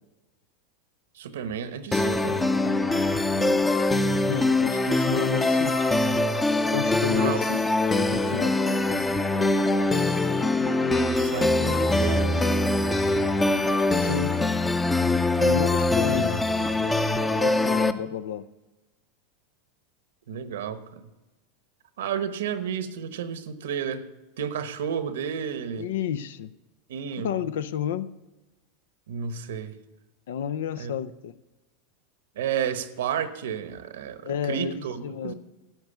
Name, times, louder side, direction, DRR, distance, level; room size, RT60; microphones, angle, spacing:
voice 1, 1.1-2.4 7.2-7.4 10.6-12.7 20.3-21.1 22.0-24.1 24.4-25.9 26.9-27.3 29.1-29.8 30.8-30.9 32.4-35.3, right 8 dB, 85° right, 1.0 m, -32 dB
sound 1, 1.9-17.9, left 2 dB, 10° left, 0.6 m, -23 dB
voice 2, 4.3-5.8 6.7-7.6 8.0-8.6 14.0-14.5 15.4-16.7 17.2-18.5 25.8-26.5 27.2-28.1 30.3-31.3 34.2-35.3, left 8 dB, 80° left, 0.6 m, -31 dB
12.0 x 8.0 x 6.8 m
supercardioid pair, 125°, 0 cm